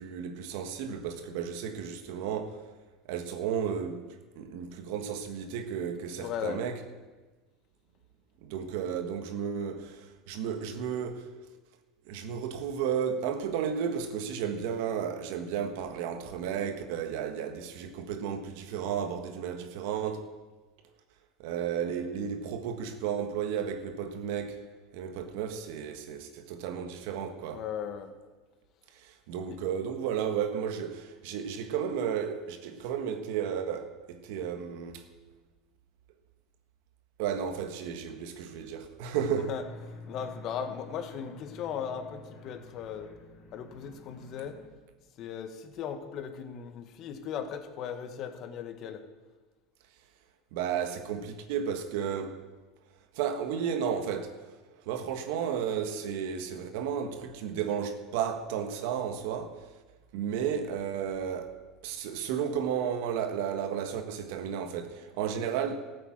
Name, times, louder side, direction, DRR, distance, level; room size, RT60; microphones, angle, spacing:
voice 1, 0.0-2.6 3.1-4.0 4.3-6.8 8.4-11.3 12.1-20.3 21.4-24.6 24.9-27.6 28.9-35.0 37.2-39.5 50.5-52.4 53.1-54.4 54.8-59.6 60.1-65.7, right 8 dB, 70° right, 1.5 m, -33 dB
voice 2, 6.1-6.6 27.5-28.1 29.5-29.6 39.4-43.1 43.5-44.6 45.2-49.0, left 8 dB, 50° left, 1.7 m, -37 dB
sound 1, 39.4-44.7, left 3 dB, 65° left, 3.8 m, -49 dB
13.5 x 8.4 x 7.4 m
supercardioid pair, 100°, 0 cm